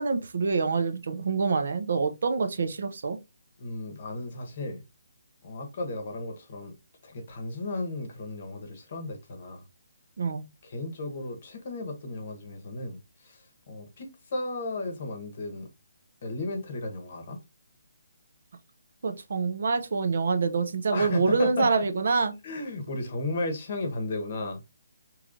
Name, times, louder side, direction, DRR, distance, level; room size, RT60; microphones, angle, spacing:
voice 1, 0.0-3.2 10.2-10.4 19.0-22.3, right 4 dB, 55° right, 0.5 m, -26 dB
voice 2, 3.6-4.8 5.4-6.7 7.0-9.6 10.6-13.4 13.7-15.7 16.2-17.4 20.9-21.8 22.4-24.6, left 2 dB, 35° left, 0.9 m, -34 dB
4.8 x 3.1 x 2.5 m
hypercardioid pair, 175°, 0 cm